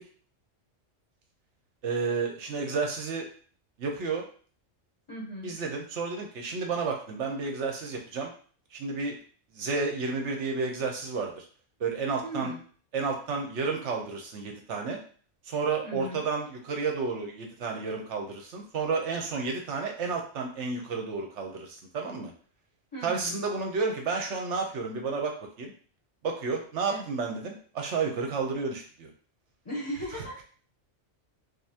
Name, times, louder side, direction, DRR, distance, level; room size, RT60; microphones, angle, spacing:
voice 1, 1.8-3.3 3.8-4.2 5.4-8.3 8.7-9.2 9.5-11.5 11.8-12.5 12.9-15.0 15.5-22.3 23.0-25.7 26.2-29.1 30.1-30.4, right 4 dB, 75° right, 1 dB, 1.0 m, -31 dB
voice 2, 5.1-5.5 12.2-12.6 15.8-16.2 22.9-23.4 26.9-27.1 29.6-30.4, equal, 30° left, -4 dB, 0.8 m, -37 dB
5.2 x 2.0 x 2.8 m, 0.44 s
omnidirectional pair, 1.2 m